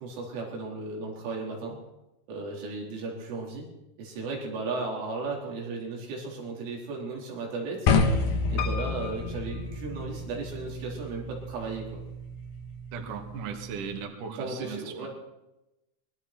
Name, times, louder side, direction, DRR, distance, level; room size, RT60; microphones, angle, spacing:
voice 1, 0.0-1.8 2.3-3.7 4.0-7.9 8.3-12.0 14.4-15.1, right 3 dB, 85° right, -2 dB, 7.1 m, -35 dB
sound 1, 7.9-14.0, left 3 dB, 55° left, 3.0 m, -30 dB
Piano, 8.6-10.6 11.2-11.9 12.2-12.3 12.5-12.6, left 8 dB, 80° left, 1.7 m, -39 dB
voice 2, 12.9-15.1, right 6 dB, 50° right, 3 dB, 3.3 m, -37 dB
25.0 x 22.5 x 4.6 m, 0.95 s
omnidirectional pair, 5.5 m